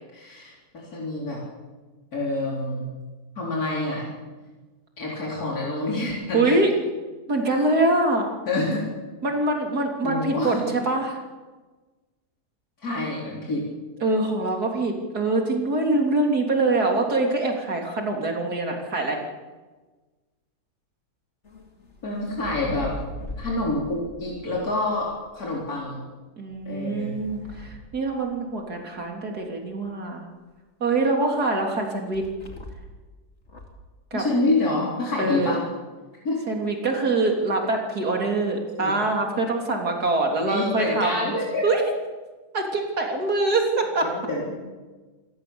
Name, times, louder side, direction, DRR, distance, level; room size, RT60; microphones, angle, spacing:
voice 1, 0.1-1.4 2.1-2.9 3.4-4.1 5.0-6.5 8.5-8.9 10.0-10.6 12.8-13.7 22.0-22.9 23.4-26.0 26.7-27.2 34.1-35.6 36.2-36.4 38.7-39.0 40.4-41.6 44.0-44.6, left 2 dB, 70° left, -4 dB, 4.7 m, -27 dB
voice 2, 6.3-6.7 7.3-8.3 9.2-11.2 14.0-19.2 26.4-30.3 30.8-32.3 34.1-34.2 35.2-35.6 36.5-41.3 41.6-41.8 42.5-44.1, right 2 dB, 80° right, 1 dB, 3.8 m, -24 dB
sound 1, 21.4-25.5 26.5-28.8 32.1-33.0 33.4-33.9, left 1 dB, 45° left, 2.9 m, -41 dB
27.5 x 18.5 x 7.1 m, 1.3 s
omnidirectional pair, 1.6 m